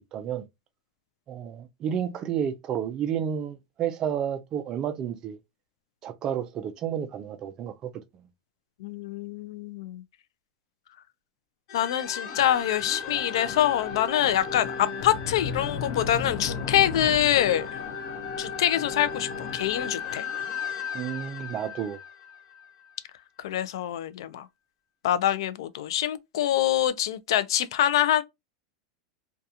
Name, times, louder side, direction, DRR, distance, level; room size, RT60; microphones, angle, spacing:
voice 1, 0.1-0.4 1.3-5.4 6.0-8.2 20.9-22.0, right 9 dB, 25° right, 0.4 m, -31 dB
voice 2, 8.8-10.0 11.7-17.7 18.4-20.2 23.4-24.5 25.0-28.2, left 11 dB, 80° left, 0.3 m, -25 dB
sound 1, 11.7-22.9, left 6 dB, 50° left, 0.8 m, -34 dB
2.8 x 2.2 x 2.3 m
supercardioid pair, 165°, 3 cm